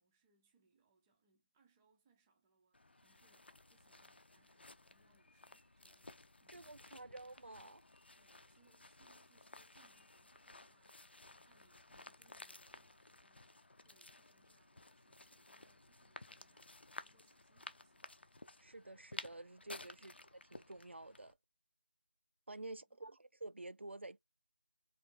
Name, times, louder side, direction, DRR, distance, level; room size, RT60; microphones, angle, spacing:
voice 1, 0.0-7.2 8.2-18.2 22.7-23.2, right 4 dB, 10° right, 0.5 m, -76 dB
sound 1, 2.7-21.3, left 2 dB, 65° left, 0.7 m, -56 dB
voice 2, 6.5-7.8 18.6-20.1 20.5-21.4 22.5-24.2, right 2 dB, 90° right, 0.5 m, -50 dB
3.8 x 3.2 x 3.5 m
figure-of-eight pair, 165°, 6 cm